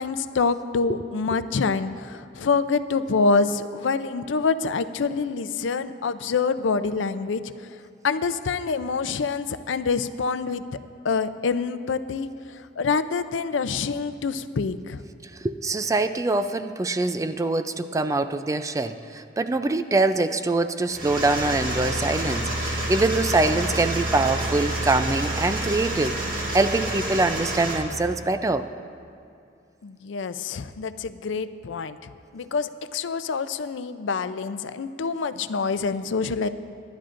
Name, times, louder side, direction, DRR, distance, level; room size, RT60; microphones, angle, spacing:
voice 1, 0.0-7.8 8.0-10.6 11.0-15.0 29.8-36.5, left 4 dB, 85° left, 12 dB, 0.5 m, -26 dB
voice 2, 15.4-28.7, right 2 dB, 15° right, 10 dB, 0.4 m, -24 dB
sound 1, 20.9-27.8, right 1 dB, 50° right, 1.7 m, -28 dB
24.0 x 11.5 x 2.5 m, 2.5 s
head